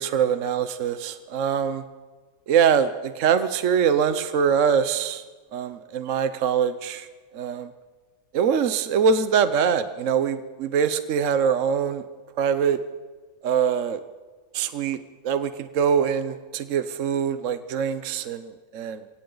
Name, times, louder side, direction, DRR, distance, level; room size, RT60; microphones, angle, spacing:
voice 1, 0.0-1.8 2.5-5.2 5.5-7.1 7.3-7.7 8.3-12.0 12.4-12.8 13.4-14.0 14.5-15.0 15.2-19.0, right 7 dB, 60° right, 11 dB, 1.0 m, -23 dB
28.0 x 24.0 x 3.9 m, 1.4 s
omnidirectional pair, 1.8 m